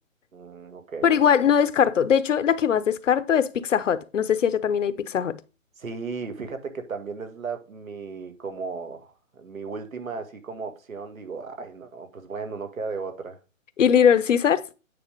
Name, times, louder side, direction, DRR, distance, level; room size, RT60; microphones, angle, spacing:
voice 1, 0.3-1.2 5.8-13.4, right 4 dB, 80° right, 2.0 m, -35 dB
voice 2, 1.0-5.4 13.8-14.6, left 8 dB, 65° left, 0.8 m, -21 dB
9.2 x 3.6 x 5.1 m
hypercardioid pair, 155°, 40 cm